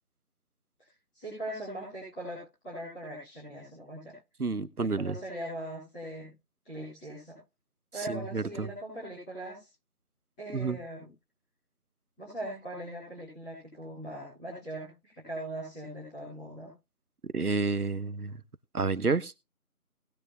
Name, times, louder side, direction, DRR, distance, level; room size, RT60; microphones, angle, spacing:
voice 1, 0.8-4.1 4.8-6.3 6.6-7.4 7.9-9.7 10.4-11.1 12.2-16.7, right 1 dB, 5° left, 4.5 m, -40 dB
voice 2, 4.4-5.1 8.1-8.7 10.5-10.8 17.3-18.3 18.7-19.3, right 4 dB, 75° right, 1.1 m, -29 dB
19.5 x 9.7 x 2.2 m
figure-of-eight pair, 170°, 45 cm